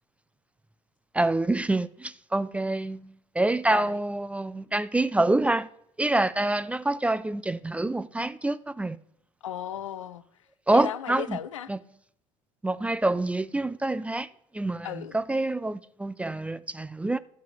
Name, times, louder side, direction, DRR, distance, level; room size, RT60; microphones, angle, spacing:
voice 1, 1.1-5.7 6.0-9.0 10.7-11.4 11.7-11.8 12.6-14.3 14.5-17.2, right 2 dB, 10° right, 0.4 m, -26 dB
voice 2, 3.7-4.0 9.4-10.2 10.7-11.7 14.8-15.2, left 10 dB, 75° left, 0.5 m, -35 dB
13.5 x 5.7 x 4.6 m
figure-of-eight pair, 60°, 17 cm